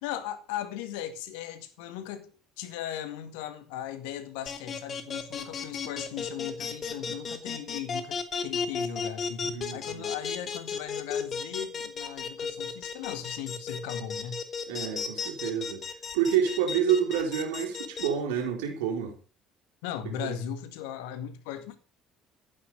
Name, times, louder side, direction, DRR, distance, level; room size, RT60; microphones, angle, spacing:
voice 1, 0.0-14.4 19.8-21.8, left 10 dB, 70° left, 2.0 m, -38 dB
sound 1, 4.5-18.1, left 6 dB, 40° left, 2.8 m, -33 dB
voice 2, 9.4-10.1 14.7-15.8 16.1-19.2 20.0-20.4, right 8 dB, 70° right, 4.0 m, -28 dB
14.5 x 9.7 x 6.9 m
figure-of-eight pair, 55°, 0 cm